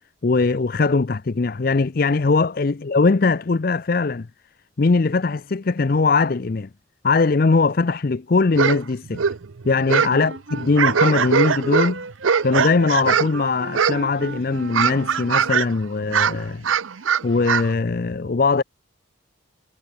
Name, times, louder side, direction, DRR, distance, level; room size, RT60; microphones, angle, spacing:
voice 1, 0.2-4.3 4.8-6.7 7.0-9.2 9.6-12.0 12.4-16.6 17.2-18.6, left 4 dB, 45° left, 0.5 m, -20 dB
sound 1, 8.5-8.8 9.1-10.2 10.6-13.4 13.7-14.2 14.5-15.7 16.0-17.7, right 7 dB, 85° right, 0.6 m, -21 dB
Wind instrument woodwind instrument, 9.9-15.6, right 3 dB, 65° right, 1.5 m, -36 dB
head